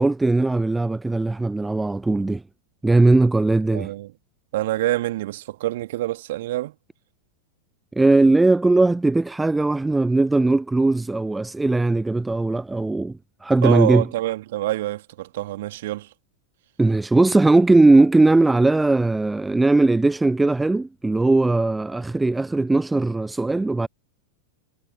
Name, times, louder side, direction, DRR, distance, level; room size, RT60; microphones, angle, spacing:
voice 1, 0.0-2.4 2.8-3.9 8.0-14.0 16.8-23.9, right 2 dB, 10° right, 0.3 m, -19 dB
voice 2, 3.7-4.1 4.5-6.7 13.6-16.1, right 16 dB, 55° right, 2.3 m, -26 dB
figure-of-eight pair, 90°, 0 cm